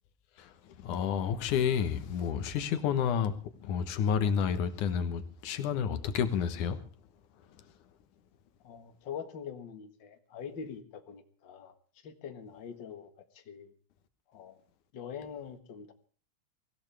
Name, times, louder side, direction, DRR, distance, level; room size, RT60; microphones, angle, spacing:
voice 1, 0.4-3.4 3.6-6.9, left 7 dB, 85° left, 2.7 m, -30 dB
voice 2, 8.6-11.7 12.0-13.7 14.3-14.6 14.9-15.9, left 7 dB, 45° left, 2.0 m, -44 dB
24.0 x 16.0 x 3.4 m
omnidirectional pair, 3.4 m